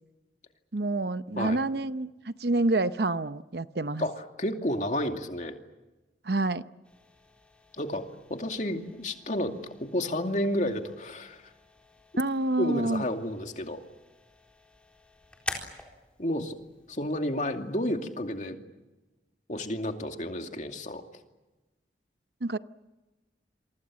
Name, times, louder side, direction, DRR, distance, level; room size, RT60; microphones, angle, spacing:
voice 1, 0.7-4.1 6.2-6.6 12.2-13.0 22.4-22.6, right 2 dB, 65° right, 13 dB, 0.8 m, -28 dB
voice 2, 4.0-5.5 7.8-8.0 8.3-9.5 9.8-11.5 12.6-13.8 16.2-16.6 16.9-18.6 19.5-21.0, left 1 dB, 40° left, 5 dB, 2.5 m, -31 dB
sound 1, 6.8-18.4, left 2 dB, 5° left, 3.9 m, -47 dB
28.0 x 24.0 x 7.6 m, 1.1 s
head